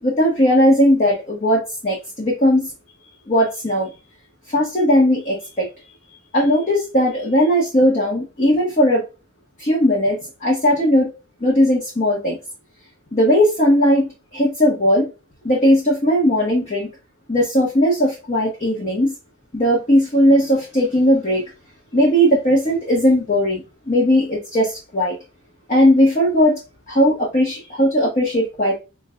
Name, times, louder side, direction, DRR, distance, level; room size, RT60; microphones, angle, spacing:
voice 1, 0.0-2.7 3.3-3.9 4.5-5.7 6.3-9.0 9.6-11.1 11.4-12.4 13.1-15.1 15.4-16.9 17.3-19.1 19.5-21.4 21.9-25.1 25.7-26.6 26.9-28.8, equal, 35° left, -3 dB, 1.3 m, -17 dB
6.3 x 2.5 x 2.5 m, 0.28 s
head